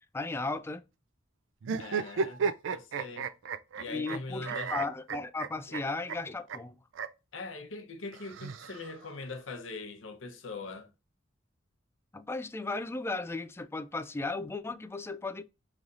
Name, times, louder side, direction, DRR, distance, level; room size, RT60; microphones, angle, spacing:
voice 1, 0.1-0.8 3.9-6.8 12.1-15.4, left 3 dB, 15° left, 0.3 m, -35 dB
sound 1, 1.6-4.2 4.5-5.8 6.1-6.2 6.5-6.6 6.9-7.1 8.1-9.1, right 5 dB, 75° right, 0.4 m, -33 dB
voice 2, 1.8-3.3 3.7-4.7 7.3-10.9, left 3 dB, 80° left, 0.8 m, -42 dB
5.3 x 3.1 x 2.5 m
head